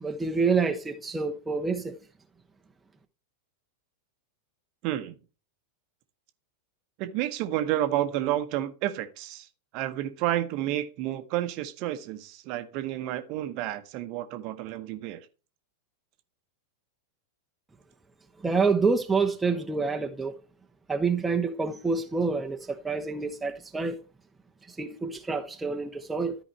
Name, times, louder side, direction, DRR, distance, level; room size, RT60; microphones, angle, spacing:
voice 1, 0.0-2.0 18.4-20.3 20.9-24.0 24.7-26.4, right 4 dB, 10° right, 0.9 m, -27 dB
voice 2, 4.8-5.2 7.0-9.5 9.7-15.3, right 13 dB, 45° right, 1.0 m, -30 dB
13.5 x 5.0 x 3.1 m
figure-of-eight pair, 90°, 0 cm